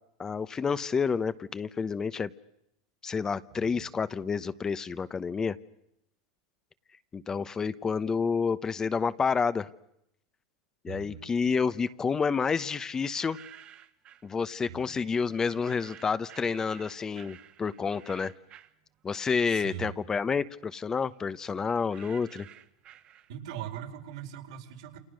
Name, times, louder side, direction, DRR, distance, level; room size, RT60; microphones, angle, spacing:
voice 1, 0.2-2.3 3.0-5.6 7.1-9.7 10.8-13.4 14.2-18.3 19.0-22.5, left 5 dB, 20° left, 14 dB, 0.9 m, -29 dB
voice 2, 3.5-3.9 10.9-11.3 14.7-15.0 19.5-19.9 23.3-25.0, right 10 dB, 75° right, 4 dB, 4.3 m, -41 dB
sound 1, 13.0-14.3 15.3-19.5 19.9-23.6, right 11 dB, 40° right, 1.7 m, -53 dB
29.0 x 27.5 x 6.5 m, 0.80 s
supercardioid pair, 120°, 3 cm